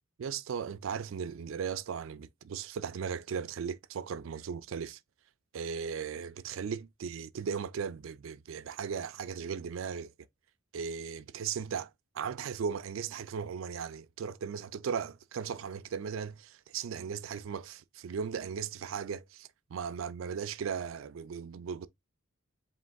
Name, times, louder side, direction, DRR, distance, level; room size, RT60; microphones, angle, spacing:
voice 1, 0.2-5.0 5.5-10.1 10.7-21.9, right 6 dB, 75° right, 0.4 m, -37 dB
5.1 x 3.3 x 2.2 m
head